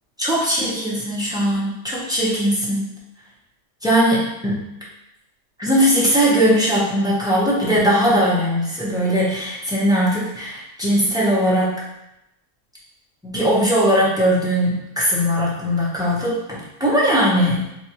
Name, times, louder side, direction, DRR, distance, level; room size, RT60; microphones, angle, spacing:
voice 1, 0.2-2.9 3.8-4.6 5.6-11.7 13.2-17.6, equal, 5° right, -7 dB, 0.4 m, -19 dB
4.5 x 2.3 x 2.9 m, 0.87 s
omnidirectional pair, 1.5 m